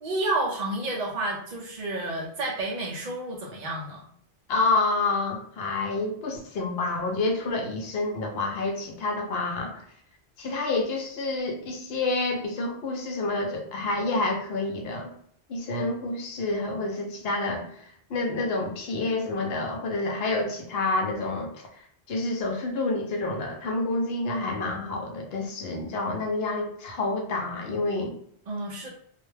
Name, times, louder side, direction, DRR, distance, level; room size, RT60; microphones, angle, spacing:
voice 1, 0.0-4.0 28.5-28.9, right 2 dB, 55° right, -2 dB, 0.5 m, -30 dB
voice 2, 4.5-9.8 10.4-15.1 15.5-17.7 18.1-21.5 22.1-28.1, left 2 dB, 70° left, 2 dB, 0.8 m, -28 dB
2.3 x 2.1 x 3.1 m, 0.63 s
omnidirectional pair, 1.1 m